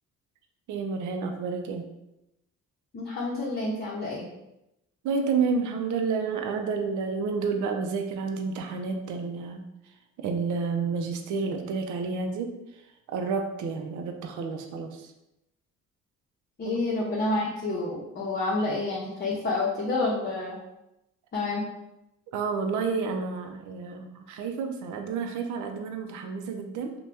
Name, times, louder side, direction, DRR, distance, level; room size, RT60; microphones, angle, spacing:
voice 1, 0.7-1.9 5.0-15.1 16.6-16.8 22.3-27.0, right 5 dB, 75° right, 4 dB, 0.5 m, -30 dB
voice 2, 2.9-4.3 16.6-20.6 21.3-21.6, left 2 dB, 35° left, -5 dB, 0.7 m, -29 dB
2.7 x 2.2 x 3.3 m, 0.88 s
cardioid pair, 90°, 30 cm